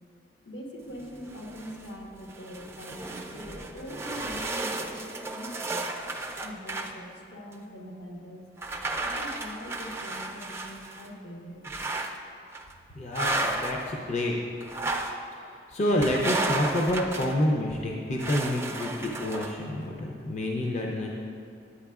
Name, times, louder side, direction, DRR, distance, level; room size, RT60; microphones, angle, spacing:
voice 1, 0.4-5.9 6.4-8.4 8.9-11.6, equal, 80° left, -2 dB, 1.2 m, -42 dB
sound 1, 1.0-1.9 2.3-6.9 7.5-7.6 8.6-11.1 11.6-12.2 12.5-12.7 13.1-13.9 14.6-15.2 16.0-17.4 18.2-19.6, right 2 dB, 15° right, 0.4 m, -33 dB
voice 2, 12.9-14.3 15.7-21.1, left 1 dB, 40° left, -1 dB, 0.5 m, -28 dB
9.8 x 8.3 x 2.3 m, 2.5 s
head